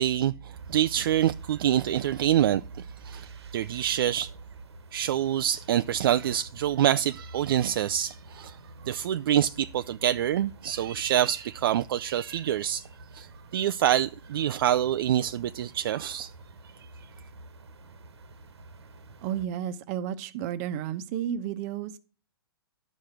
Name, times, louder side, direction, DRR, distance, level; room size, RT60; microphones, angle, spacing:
voice 1, 0.0-4.3 4.9-8.6 8.8-12.9 13.1-16.3, right 11 dB, 60° right, 0.4 m, -26 dB
sound 1, 0.5-19.5, right 2 dB, 85° right, 1.3 m, -48 dB
voice 2, 19.2-22.0, right 10 dB, 35° right, 0.9 m, -32 dB
12.0 x 5.0 x 5.9 m
hypercardioid pair, 140°, 13 cm